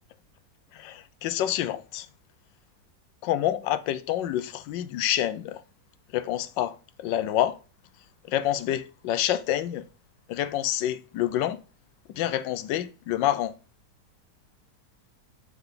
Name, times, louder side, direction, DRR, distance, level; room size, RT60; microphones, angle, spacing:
voice 1, 0.7-2.1 3.2-5.6 6.1-7.6 8.3-9.8 10.3-11.6 12.1-13.5, left 12 dB, 90° left, 1.3 m, -27 dB
7.3 x 4.5 x 3.7 m
omnidirectional pair, 1.9 m